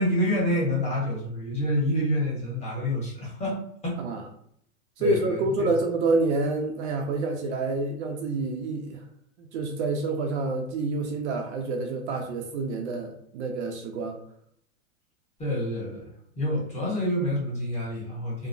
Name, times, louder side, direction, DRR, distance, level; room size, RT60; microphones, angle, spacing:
voice 1, 0.0-4.0 5.0-5.7 15.4-16.1 16.4-18.5, equal, 15° left, -5 dB, 1.0 m, -28 dB
voice 2, 5.0-9.0 9.4-14.2, right 2 dB, 55° right, 3 dB, 0.5 m, -28 dB
2.9 x 2.0 x 2.5 m, 0.68 s
supercardioid pair, 140°, 43 cm